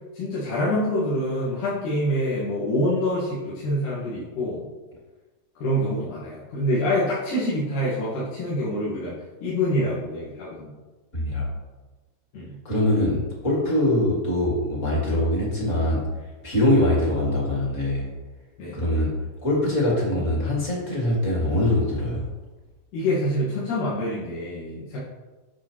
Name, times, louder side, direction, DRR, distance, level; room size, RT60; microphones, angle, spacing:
voice 1, 0.1-4.7 5.6-9.2 9.4-10.7 12.3-12.6 18.6-18.8 22.9-25.0, left 1 dB, 75° left, -10 dB, 3.1 m, -26 dB
voice 2, 11.1-11.5 12.6-16.0 16.4-18.1 18.7-19.1 19.4-22.2, left 1 dB, 30° left, -4 dB, 1.5 m, -23 dB
8.9 x 6.2 x 3.0 m, 1.2 s
omnidirectional pair, 3.7 m